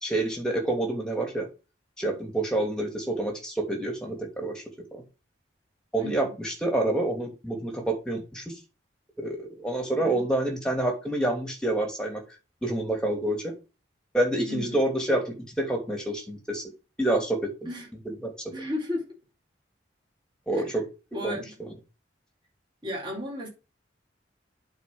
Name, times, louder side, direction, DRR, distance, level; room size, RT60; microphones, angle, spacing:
voice 1, 0.0-1.5 2.0-4.6 4.9-5.0 5.9-8.5 9.2-12.2 12.6-13.5 14.1-16.6 17.0-17.5 18.2-18.5 20.5-20.8 21.2-21.7, right 1 dB, 5° left, 2.7 m, -28 dB
voice 2, 6.0-6.3 10.0-10.3 14.5-14.8 17.6-17.9 18.5-19.1 20.5-20.8 21.1-21.7 22.8-23.5, left 1 dB, 25° right, 4.6 m, -34 dB
8.3 x 4.5 x 6.3 m
head